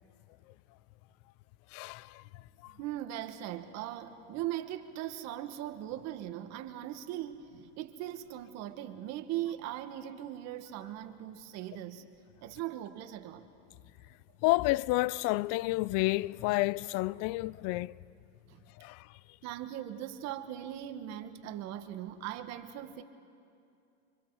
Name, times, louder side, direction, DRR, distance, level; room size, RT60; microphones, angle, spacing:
voice 1, 1.7-2.2 2.6-2.7 14.4-17.9 18.8-19.1, left 20 dB, 50° left, 0.4 m, -30 dB
voice 2, 2.7-12.1 12.4-13.5 18.5-18.6 19.4-23.0, right 12 dB, 50° right, 1.5 m, -39 dB
27.0 x 24.5 x 4.7 m
supercardioid pair, 110°, 34 cm